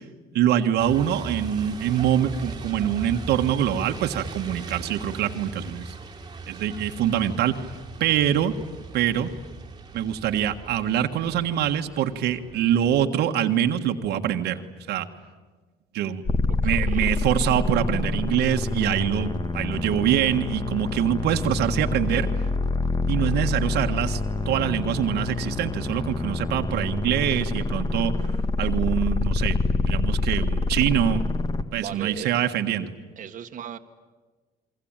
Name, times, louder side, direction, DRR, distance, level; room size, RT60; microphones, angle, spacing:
voice 1, 0.3-5.9 6.5-7.6 8.0-8.5 8.9-9.3 9.9-14.6 14.9-15.1 15.9-16.2 16.6-22.3 23.1-24.2 24.5-28.1 28.6-29.6 29.9-31.2 31.7-32.9, right 10 dB, 80° right, 5 dB, 1.6 m, -24 dB
Truck, 0.8-13.1, right 4 dB, 25° right, 2.2 m, -39 dB
sound 1, 16.2-31.6, left 3 dB, 25° left, 1.8 m, -26 dB
voice 2, 16.5-17.1 31.7-32.3 33.2-33.8, right 9 dB, 50° right, 5 dB, 1.5 m, -37 dB
29.0 x 22.5 x 9.0 m, 1.4 s
cardioid pair, 110°, 17 cm